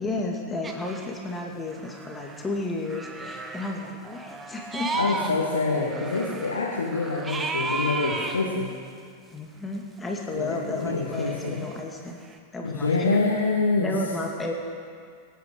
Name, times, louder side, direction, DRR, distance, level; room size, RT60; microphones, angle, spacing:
voice 1, 0.0-5.1 9.3-12.2 12.5-13.2 13.8-14.5, left 2 dB, 15° left, 0 dB, 2.3 m, -32 dB
sound 1, 0.6-1.3 1.6-2.6 2.9-5.3 5.6-8.4 11.1-12.4, right 3 dB, 15° right, 1.2 m, -34 dB
voice 2, 4.9-8.7 10.4-11.7 12.6-13.9, left 3 dB, 75° left, -5 dB, 2.0 m, -26 dB
24.5 x 9.1 x 5.1 m, 2.2 s
figure-of-eight pair, 90°, 0 cm